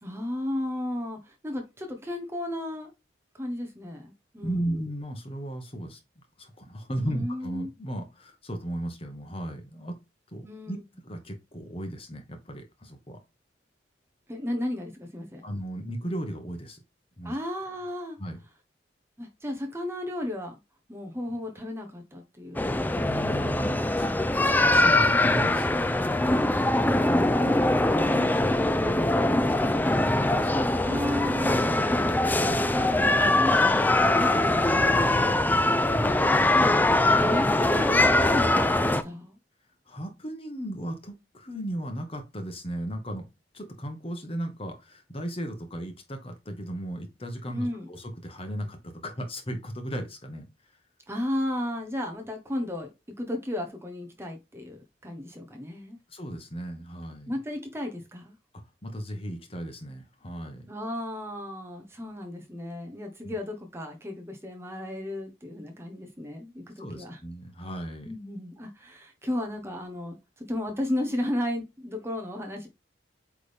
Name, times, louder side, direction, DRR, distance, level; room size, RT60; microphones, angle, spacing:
voice 1, 0.0-2.9 3.3-4.8 7.0-7.7 10.4-10.8 14.3-15.5 17.2-18.2 19.2-20.6 20.9-23.1 27.2-28.8 30.8-31.9 32.4-34.6 34.9-39.4 47.5-47.9 51.1-52.9 53.2-56.0 57.3-58.3 60.7-67.2 68.0-72.7, left 1 dB, 15° right, 1.1 m, -34 dB
voice 2, 4.4-6.0 6.4-10.0 10.3-10.8 11.0-13.2 15.4-16.8 17.2-17.4 18.2-18.4 23.1-24.1 24.4-26.5 26.9-27.3 28.3-28.5 28.8-30.8 32.4-32.7 35.9-36.2 39.9-43.3 43.5-50.5 56.1-57.3 58.8-60.7 63.2-63.4 66.8-68.1, right 1 dB, 30° left, 1.4 m, -36 dB
sound 1, 22.5-39.0, left 2 dB, 10° left, 0.4 m, -22 dB
8.3 x 3.7 x 3.5 m
head